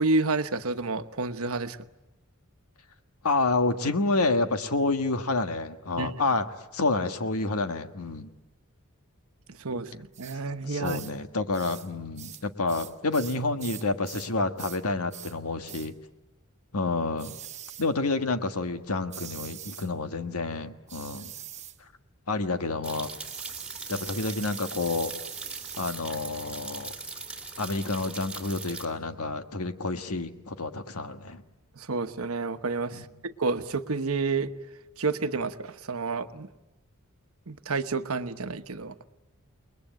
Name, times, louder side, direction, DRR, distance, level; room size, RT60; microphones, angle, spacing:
voice 1, 0.0-1.8 6.0-6.1 9.5-11.0 31.8-34.5 35.0-36.5 37.5-38.9, right 3 dB, 75° right, 9 dB, 1.1 m, -29 dB
voice 2, 3.2-8.3 10.6-15.9 16.7-17.3 17.8-21.3 22.3-23.1 23.9-25.1 25.8-26.9 27.6-31.4 32.9-33.0, left 3 dB, 90° left, 8 dB, 1.5 m, -29 dB
sound 1, 10.1-10.4 10.8-11.2 11.5-11.9 12.2-14.3 14.6-14.8 15.1-15.4 15.7-15.9 17.2-17.9 19.1-19.9 20.9-21.8 23.2-26.0, right 11 dB, 30° right, 1.3 m, -43 dB
sound 2, 22.8-28.8, right 3 dB, 5° right, 2.5 m, -40 dB
29.0 x 21.0 x 9.2 m, 1.1 s
head